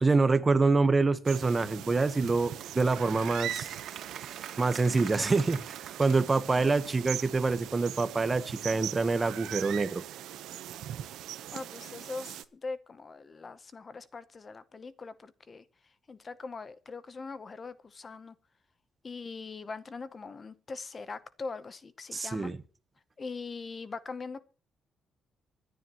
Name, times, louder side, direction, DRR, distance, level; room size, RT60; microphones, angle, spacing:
voice 1, 0.0-3.8 4.6-10.0 22.1-22.6, right 3 dB, 25° right, 1.1 m, -26 dB
sound 1, 1.2-12.4, right 12 dB, 90° right, 0.9 m, -41 dB
Applause / Crowd, 1.7-7.1, right 9 dB, 65° right, 2.2 m, -46 dB
voice 2, 11.5-18.3 19.0-22.5 23.2-24.4, left 4 dB, 30° left, 0.8 m, -42 dB
25.5 x 10.5 x 3.0 m
cardioid pair, 125°, 0 cm